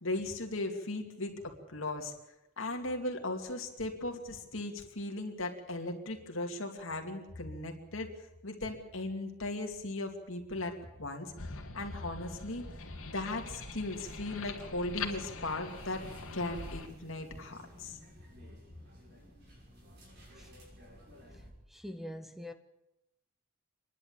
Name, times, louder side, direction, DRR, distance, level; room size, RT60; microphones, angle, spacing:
voice 1, 0.0-2.1 2.6-8.1 8.4-11.3 11.7-12.6 13.0-16.1 16.3-18.0, left 2 dB, 65° left, 2.7 m, -37 dB
sound 1, 11.4-16.9, left 4 dB, 90° left, 2.7 m, -43 dB
sound 2, 12.5-21.5, left 1 dB, 55° right, 5.9 m, -54 dB
voice 2, 21.7-22.5, left 1 dB, ahead, 0.8 m, -43 dB
27.0 x 11.5 x 8.7 m
head